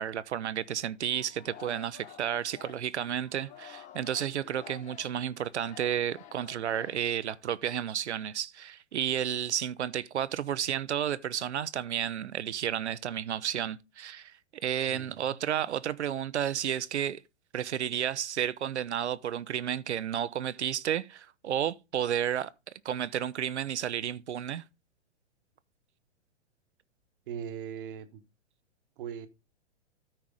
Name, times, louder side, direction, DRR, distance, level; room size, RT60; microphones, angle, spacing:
voice 1, 0.0-14.3 14.6-17.2 17.5-22.5 22.8-24.6, right 10 dB, 70° right, 0.7 m, -32 dB
Singing, 1.1-7.5, left 9 dB, 20° left, 0.7 m, -51 dB
voice 2, 14.9-15.4 27.3-28.2 29.0-29.3, right 8 dB, 50° right, 1.2 m, -40 dB
13.0 x 4.7 x 3.8 m
figure-of-eight pair, 115°, 35 cm